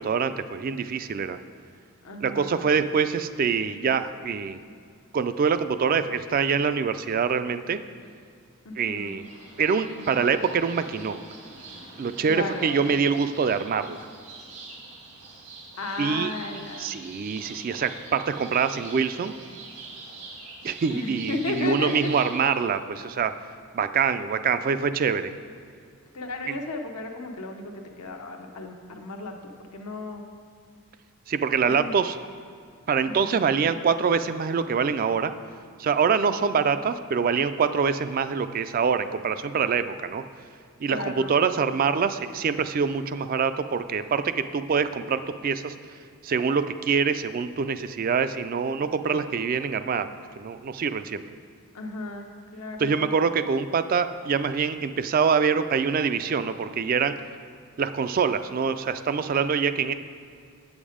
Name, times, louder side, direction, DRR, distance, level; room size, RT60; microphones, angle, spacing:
voice 1, 0.0-1.4 2.2-4.6 5.1-7.8 8.8-9.2 9.6-11.2 12.0-14.0 16.0-16.3 16.8-19.3 20.6-23.3 23.7-25.3 31.3-32.2 32.9-35.3 35.8-40.2 40.8-45.7 46.2-50.1 50.4-51.2 52.8-57.2 57.8-59.9, right 6 dB, 40° right, 11 dB, 0.3 m, -25 dB
voice 2, 2.0-2.7 8.6-9.3 12.2-12.9 15.8-17.0 20.9-22.1 26.1-30.2 31.6-31.9 33.0-33.6 40.9-41.3 51.7-53.1, left 3 dB, 90° left, 3 dB, 0.9 m, -35 dB
sound 1, 8.9-22.4, right 3 dB, 85° right, 1.8 m, -45 dB
7.7 x 7.2 x 5.0 m, 2.2 s
head